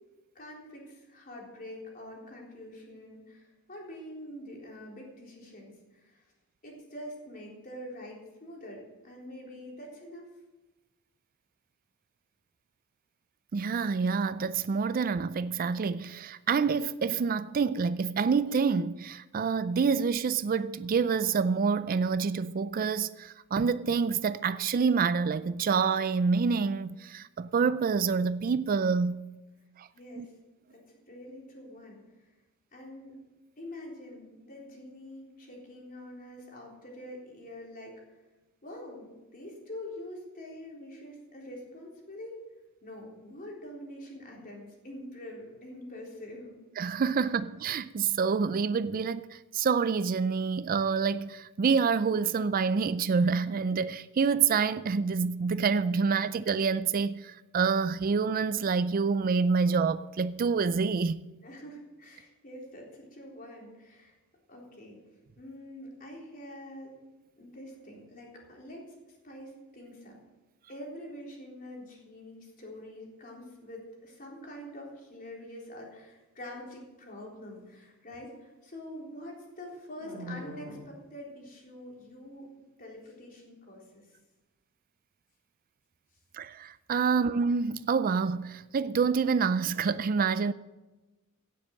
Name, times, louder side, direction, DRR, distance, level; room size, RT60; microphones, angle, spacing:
voice 1, 0.3-6.3 6.6-10.3 29.9-30.3 30.7-32.3 32.7-33.1 33.6-38.0 38.6-42.4 42.8-46.5 47.2-47.3 61.4-64.2 64.5-65.0 65.4-66.9 67.4-70.2 70.7-82.5 82.8-84.1, left 1 dB, 40° left, 3.8 m, -45 dB
voice 2, 13.5-29.2 29.8-29.9 30.2-30.3 46.8-61.2 86.3-90.5, right 5 dB, 40° right, 0.4 m, -27 dB
16.5 x 7.7 x 6.4 m
head